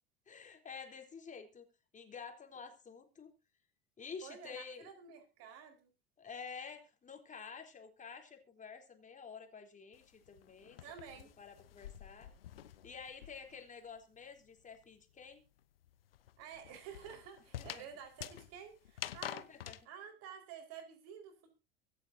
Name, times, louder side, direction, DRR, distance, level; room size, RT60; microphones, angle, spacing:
voice 1, 0.3-1.7 1.9-3.3 4.0-4.9 6.2-10.8 11.4-12.3 12.8-15.4 17.6-17.8 19.3-19.8, left 6 dB, 25° left, 5 dB, 3.7 m, -50 dB
voice 2, 4.2-5.9 10.8-11.3 16.4-19.5 19.8-21.5, right 7 dB, 55° right, 5 dB, 4.7 m, -51 dB
sound 1, 9.9-13.7 14.0-19.8, left 12 dB, 75° left, 1.0 m, -48 dB
24.5 x 8.5 x 2.8 m, 0.30 s
figure-of-eight pair, 75°, 29 cm